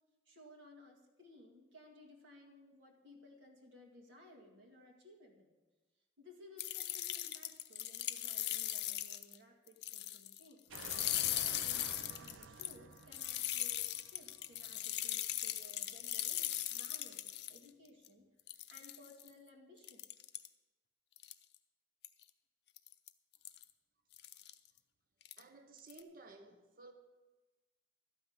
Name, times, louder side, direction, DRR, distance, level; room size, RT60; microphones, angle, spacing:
voice 1, 0.3-5.5 6.2-10.7 10.9-20.0, left 1 dB, 75° right, 2.0 m, -59 dB
sound 1, 6.6-9.4 9.7-10.4 10.7-17.6 18.0-18.1 18.5-19.3 19.8-20.5 21.2-21.5 22.0-22.2 22.8-23.1 23.4-23.6 24.1-24.5 25.2-25.4 25.8-26.0, left 13 dB, 55° left, 0.6 m, -39 dB
sound 2, 10.7-15.5, right 5 dB, 90° right, 0.5 m, -53 dB
voice 2, 25.4-26.9, right 3 dB, 45° right, 0.9 m, -56 dB
12.5 x 5.7 x 9.3 m
head